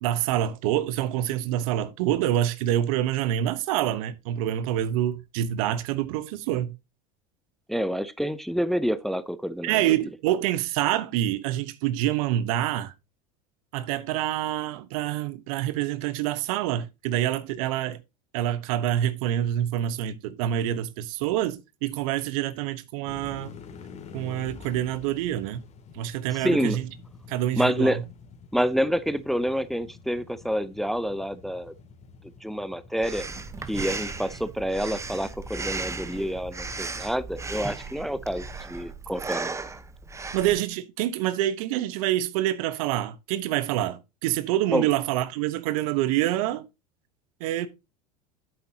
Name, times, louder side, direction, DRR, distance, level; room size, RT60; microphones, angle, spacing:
voice 1, 0.0-6.7 9.6-12.9 13.7-18.0 18.3-23.5 24.1-25.6 25.9-26.8 27.3-28.0 40.3-46.7 47.4-47.7, right 12 dB, 65° right, 1.1 m, -26 dB
voice 2, 7.7-10.1 26.3-26.8 27.5-28.0 28.5-31.7 32.4-33.2 33.7-39.8 44.7-44.9, equal, ahead, 0.7 m, -28 dB
sound 1, 23.0-38.6, left 5 dB, 35° left, 2.7 m, -48 dB
Breathing, 33.0-40.6, right 4 dB, 15° right, 1.1 m, -36 dB
9.8 x 7.9 x 2.9 m
hypercardioid pair, 90°, 19 cm